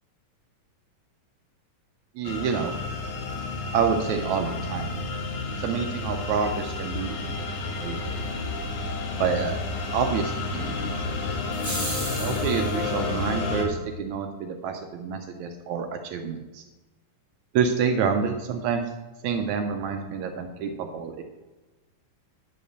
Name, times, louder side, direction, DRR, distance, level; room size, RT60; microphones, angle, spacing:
sound 1, 2.2-13.7, left 3 dB, 65° left, 2.3 m, -31 dB
voice 1, 2.2-2.7 3.7-4.9 5.6-7.4 7.6-8.5 9.2-9.6 9.9-11.2 12.1-16.6 17.5-18.8 19.2-21.2, right 6 dB, 80° right, 6 dB, 1.7 m, -28 dB
sound 2, 11.5-12.8, right 1 dB, 10° right, 1.6 m, -33 dB
9.6 x 5.5 x 6.5 m, 1.2 s
omnidirectional pair, 4.1 m